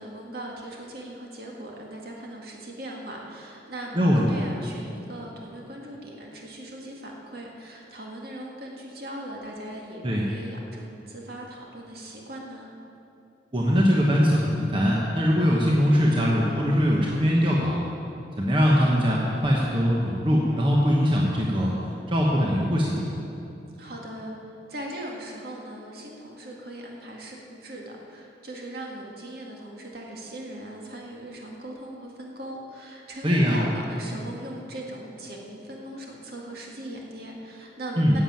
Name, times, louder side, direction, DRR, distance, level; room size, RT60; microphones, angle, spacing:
voice 1, 0.0-12.7 23.8-38.2, right 1 dB, 55° right, -1 dB, 2.0 m, -39 dB
voice 2, 13.5-17.9 18.4-21.7 22.1-23.1 33.2-33.6 38.0-38.2, equal, 25° right, -4 dB, 1.2 m, -21 dB
11.0 x 7.7 x 8.7 m, 2.8 s
head